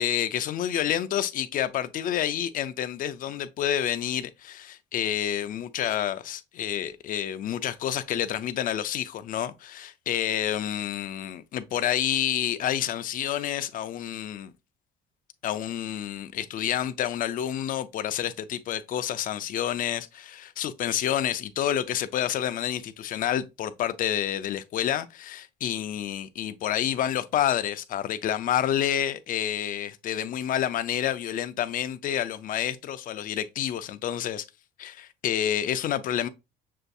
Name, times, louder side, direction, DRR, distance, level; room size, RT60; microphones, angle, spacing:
voice 1, 0.0-14.5 15.4-34.4 34.8-36.3, left 10 dB, 45° left, 0.4 m, -29 dB
6.4 x 2.6 x 2.3 m
cardioid pair, 120°, 19 cm